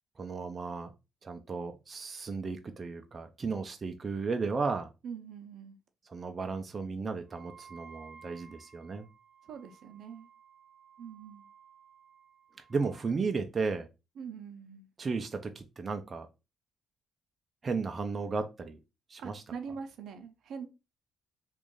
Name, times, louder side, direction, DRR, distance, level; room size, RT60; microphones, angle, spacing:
voice 1, 0.2-0.9 1.2-4.9 6.1-9.1 12.7-13.9 15.0-16.3 17.6-18.8 19.1-19.3, right 4 dB, 35° right, 0.5 m, -34 dB
voice 2, 5.0-5.8 9.4-10.3 11.0-11.4 14.2-14.9 19.2-20.7, right 6 dB, 70° right, 0.7 m, -43 dB
Wind instrument woodwind instrument, 7.3-13.1, right 6 dB, 20° left, 1.1 m, -56 dB
3.1 x 2.5 x 3.7 m
cardioid pair, 90°, 0 cm